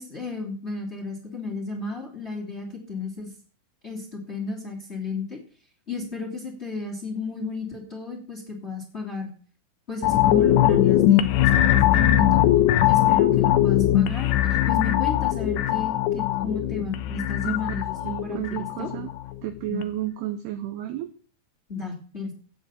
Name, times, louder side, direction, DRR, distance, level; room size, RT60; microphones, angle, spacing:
voice 1, 0.0-3.3 3.8-5.4 5.9-9.3 9.9-12.4 12.9-18.9 21.7-22.3, left 3 dB, 20° left, 2 dB, 2.0 m, -33 dB
sound 1, 10.0-19.3 19.7-19.8, left 12 dB, 75° left, 2.5 m, -21 dB
voice 2, 17.4-19.1 19.4-21.1, right 12 dB, 85° right, 10 dB, 2.3 m, -32 dB
10.5 x 8.8 x 8.4 m, 0.42 s
omnidirectional pair, 6.0 m